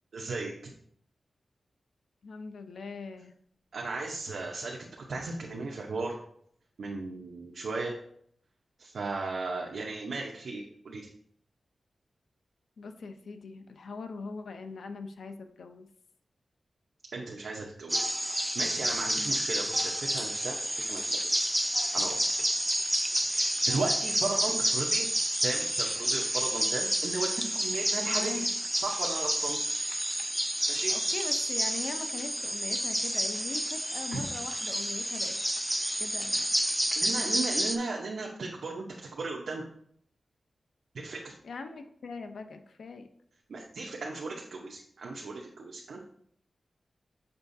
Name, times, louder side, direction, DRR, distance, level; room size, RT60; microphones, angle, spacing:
voice 1, 0.1-0.7 3.7-6.2 6.8-8.0 8.8-11.1 17.1-21.5 21.9-22.3 22.7-22.8 23.3-25.1 25.4-28.5 28.7-29.6 30.7-30.9 34.1-34.2 35.8-36.0 37.0-39.7 40.9-41.3 43.5-46.0, right 3 dB, 75° right, -1 dB, 0.8 m, -36 dB
voice 2, 2.2-3.3 12.8-15.9 19.1-19.5 28.1-28.5 30.9-35.4 36.0-36.5 41.4-43.1, left 4 dB, 85° left, 7 dB, 0.6 m, -41 dB
sound 1, 17.9-37.8, equal, 5° right, 0.4 m, -29 dB
6.8 x 5.7 x 2.7 m, 0.65 s
wide cardioid pair, 165°, 0 cm